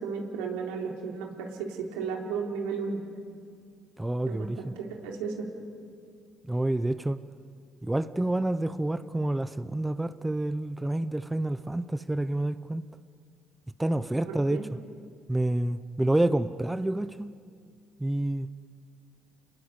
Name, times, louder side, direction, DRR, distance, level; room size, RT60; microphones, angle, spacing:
voice 1, 0.0-3.0 4.3-5.5 14.3-14.6, right 5 dB, 90° right, 3.6 m, -34 dB
voice 2, 4.0-4.7 6.5-7.2 7.8-12.8 13.8-14.6 15.3-17.3 18.0-18.5, right 1 dB, 10° right, 0.8 m, -28 dB
28.0 x 21.0 x 8.2 m
supercardioid pair, 75°, 0 cm